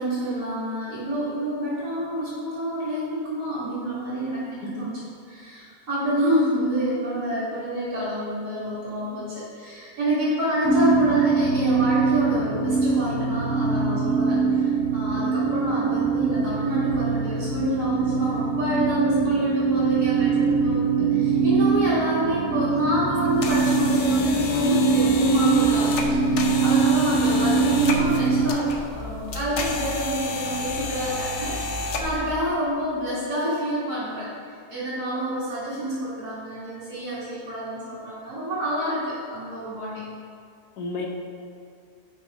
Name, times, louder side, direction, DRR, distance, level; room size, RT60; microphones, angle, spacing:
voice 1, 0.0-5.0 5.3-40.0, equal, 75° right, -11 dB, 2.3 m, -28 dB
sound 1, 10.6-28.5, right 4 dB, 10° right, 0.3 m, -22 dB
sound 2, 23.1-32.3, left 3 dB, 60° left, 0.9 m, -31 dB
voice 2, 27.1-27.4 40.8-41.1, left 2 dB, 80° left, 1 dB, 1.4 m, -34 dB
5.9 x 5.5 x 5.2 m, 2.2 s
omnidirectional pair, 1.6 m